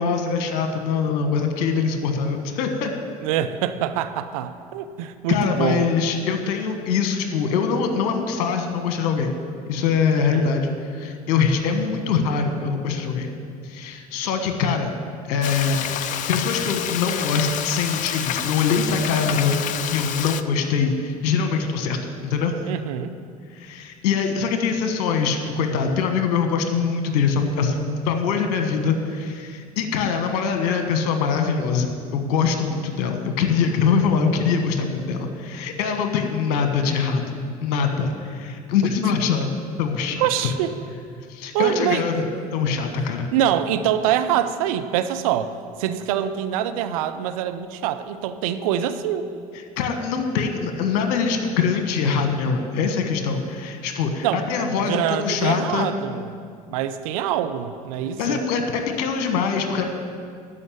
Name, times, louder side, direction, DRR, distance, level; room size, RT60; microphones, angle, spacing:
voice 1, 0.0-2.9 5.3-9.3 9.7-13.3 13.6-14.9 15.3-22.7 23.5-39.5 39.8-40.5 41.3-43.3 49.8-55.9 58.2-59.8, left 5 dB, 65° left, 6 dB, 1.3 m, -23 dB
voice 2, 3.2-5.9 10.3-10.5 22.7-23.1 40.2-40.7 41.5-42.0 43.3-49.3 54.2-54.4 54.8-56.3 56.7-58.4, right 10 dB, 65° right, 9 dB, 0.7 m, -24 dB
Frying (food), 15.4-20.4, left 10 dB, 40° left, 0.5 m, -28 dB
12.5 x 5.3 x 8.7 m, 2.2 s
figure-of-eight pair, 65°, 19 cm